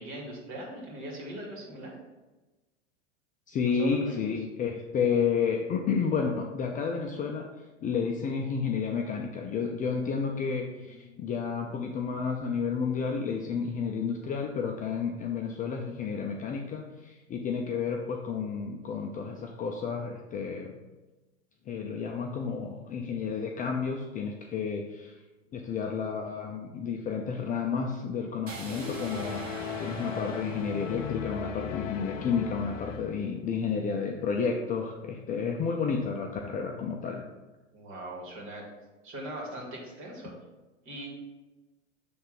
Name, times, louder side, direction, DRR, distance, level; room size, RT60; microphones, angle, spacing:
voice 1, 0.0-1.9 3.8-4.2 10.9-11.3 37.7-38.6 39.0-40.3 40.8-41.1, right 1 dB, 35° right, -2 dB, 2.5 m, -40 dB
voice 2, 3.5-7.5 7.8-20.7 21.7-25.2 25.5-37.2, left 5 dB, 20° left, 2 dB, 0.5 m, -31 dB
sound 1, 28.5-32.5, right 2 dB, 85° right, 1.8 m, -44 dB
sound 2, 28.7-33.3, left 8 dB, 85° left, 0.6 m, -37 dB
7.3 x 3.4 x 5.8 m, 1.2 s
hypercardioid pair, 105°, 37 cm